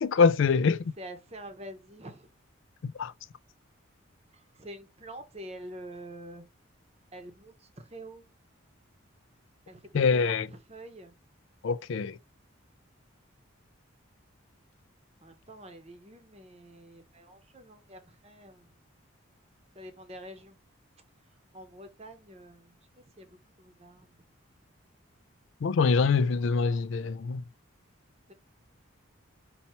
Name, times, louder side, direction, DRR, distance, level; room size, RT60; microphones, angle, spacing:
voice 1, 0.0-0.9 2.8-3.1 9.9-10.5 11.6-12.2 25.6-27.4, left 5 dB, 65° left, 0.4 m, -24 dB
voice 2, 1.0-2.3 4.3-6.5 7.1-8.2 9.7-11.1 15.2-18.8 19.7-20.6 21.5-24.2 28.3-28.4, right 1 dB, 30° right, 0.8 m, -46 dB
5.6 x 2.8 x 2.9 m
head